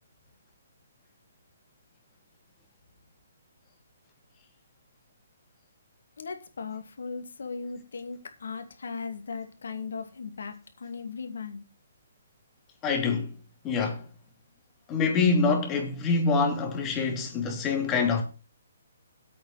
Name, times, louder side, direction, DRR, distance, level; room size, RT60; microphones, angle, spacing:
voice 1, 6.2-11.6, left 5 dB, 70° left, 2.3 m, -38 dB
voice 2, 12.8-13.3 13.6-14.1 14.9-18.2, left 4 dB, 20° left, 3.0 m, -25 dB
8.5 x 6.3 x 8.0 m
figure-of-eight pair, 135°, 0 cm